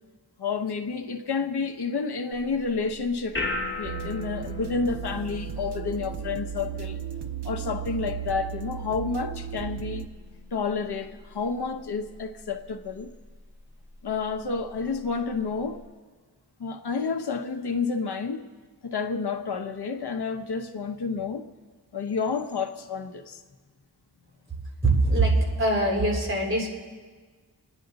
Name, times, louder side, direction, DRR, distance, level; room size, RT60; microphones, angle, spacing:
voice 1, 0.4-7.0 7.4-10.0 10.5-13.1 14.0-15.8 16.6-18.4 18.8-21.4 21.9-23.4, left 5 dB, 80° left, 7 dB, 1.0 m, -30 dB
sound 1, 2.3-15.9, left 2 dB, 30° left, 2.3 m, -40 dB
sound 2, 3.8-10.1, right 9 dB, 85° right, 0.8 m, -35 dB
voice 2, 24.8-26.7, right 2 dB, 30° right, -2 dB, 3.2 m, -22 dB
28.0 x 10.0 x 4.0 m, 1.5 s
wide cardioid pair, 95°, 39 cm